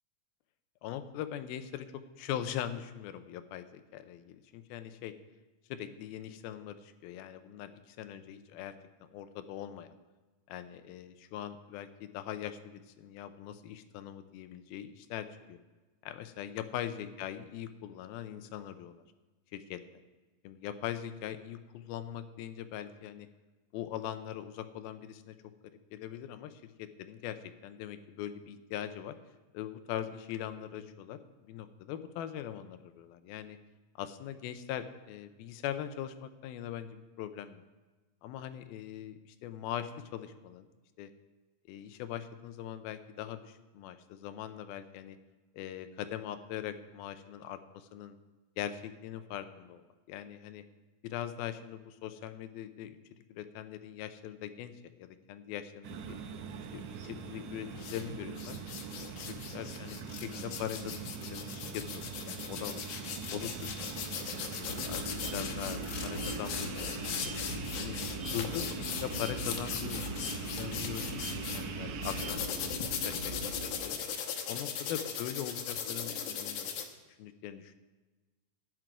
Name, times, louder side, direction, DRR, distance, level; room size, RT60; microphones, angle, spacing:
voice 1, 0.8-1.9 2.2-5.1 5.7-8.7 9.1-9.9 10.5-15.6 16.0-19.0 19.5-19.8 20.4-23.3 23.7-25.4 25.9-27.4 27.6-29.2 29.5-33.6 34.0-37.6 38.2-40.7 41.0-41.1 41.7-45.2 45.5-48.2 48.6-49.8 50.1-50.6 51.0-53.0 53.3-54.7 55.0-56.2 56.7-58.6 59.0-62.8 63.3-65.0 65.3-67.3 67.8-68.0 68.3-74.0 74.5-76.7 77.2-77.8, left 11 dB, 90° left, 10 dB, 2.6 m, -41 dB
sound 1, 55.8-72.3, right 6 dB, 70° right, 1.9 m, -42 dB
sound 2, 57.8-58.0 58.4-71.6 72.0-76.8, left 7 dB, 70° left, 2.5 m, -39 dB
sound 3, 64.7-73.7, right 1 dB, 20° right, 0.8 m, -41 dB
11.0 x 6.1 x 9.1 m, 1.2 s
omnidirectional pair, 4.2 m